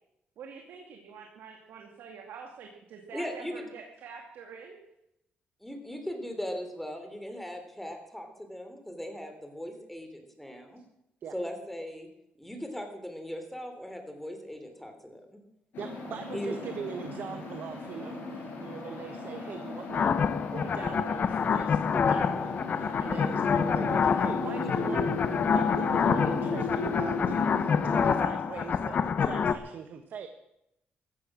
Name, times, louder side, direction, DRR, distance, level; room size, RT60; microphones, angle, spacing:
voice 1, 0.4-4.8, right 6 dB, 80° right, 2 dB, 2.4 m, -46 dB
voice 2, 3.1-3.7 5.6-10.8 11.3-12.1 12.4-15.2 16.3-16.5 23.1-23.4, equal, 5° left, 5 dB, 3.6 m, -39 dB
sound 1, 15.7-28.2, left 3 dB, 75° left, 6.4 m, -36 dB
voice 3, 15.8-30.3, right 7 dB, 65° right, 7 dB, 1.3 m, -41 dB
sound 2, 19.9-29.5, left 6 dB, 50° left, 1.1 m, -27 dB
15.5 x 14.5 x 6.2 m, 0.82 s
cardioid pair, 110°, 4 cm